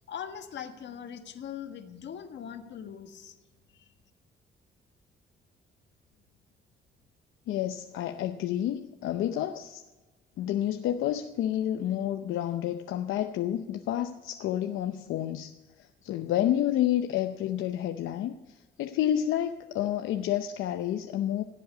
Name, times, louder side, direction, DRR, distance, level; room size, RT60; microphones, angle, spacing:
voice 1, 0.1-3.3 3.7-3.9, left 8 dB, 65° left, 6 dB, 1.5 m, -41 dB
voice 2, 7.5-9.8 10.4-15.5 16.0-18.3 18.8-21.4, left 11 dB, 85° left, 6 dB, 0.7 m, -29 dB
16.5 x 7.7 x 8.4 m, 1.2 s
cardioid pair, 90°, 20 cm